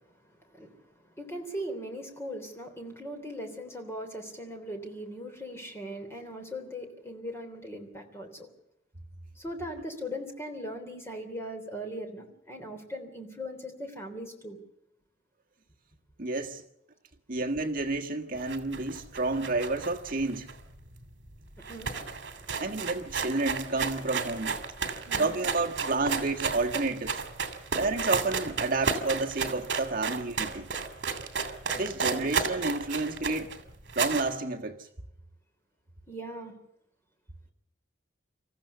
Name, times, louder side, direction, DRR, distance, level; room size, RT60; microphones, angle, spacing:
voice 1, 0.5-8.5 9.4-14.6 21.6-22.6 24.8-25.4 27.5-27.8 36.1-36.5, equal, 15° left, 3.4 m, -40 dB
voice 2, 16.2-16.6 17.3-20.5 22.6-24.6 25.2-27.2 27.8-30.7 31.8-33.5 33.9-34.9, right 3 dB, 45° right, 1.5 m, -30 dB
sound 1, 18.4-21.0 21.3-21.4 21.6-34.3, right 5 dB, 65° right, 2.8 m, -33 dB
27.0 x 14.5 x 7.0 m
head